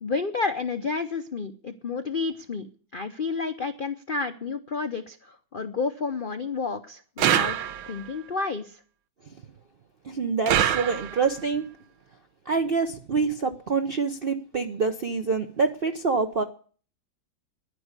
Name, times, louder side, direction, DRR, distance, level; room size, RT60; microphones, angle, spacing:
voice 1, 0.0-7.6 7.9-8.8, left 4 dB, 65° left, 9 dB, 0.5 m, -30 dB
sound 1, 7.2-8.1 10.5-11.4, right 10 dB, 85° right, 1.7 m, -25 dB
voice 2, 10.0-11.7 12.5-16.4, right 4 dB, 60° right, 7 dB, 0.6 m, -26 dB
11.0 x 9.8 x 8.1 m, 0.42 s
omnidirectional pair, 2.1 m